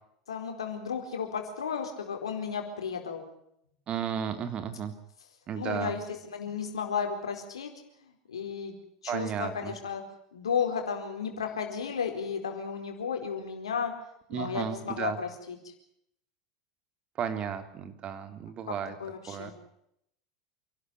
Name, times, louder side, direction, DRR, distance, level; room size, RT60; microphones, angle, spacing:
voice 1, 0.3-3.3 5.5-7.7 8.0-8.7 9.0-10.0 10.3-13.9 14.3-15.7 19.0-19.5, left 6 dB, 90° left, 4 dB, 4.5 m, -33 dB
voice 2, 3.9-4.9 5.5-5.9 9.1-9.7 14.3-15.2 17.2-18.9 19.3-19.5, right 8 dB, 40° right, 9 dB, 3.0 m, -33 dB
28.5 x 12.5 x 9.6 m, 0.77 s
hypercardioid pair, 90°, 3 cm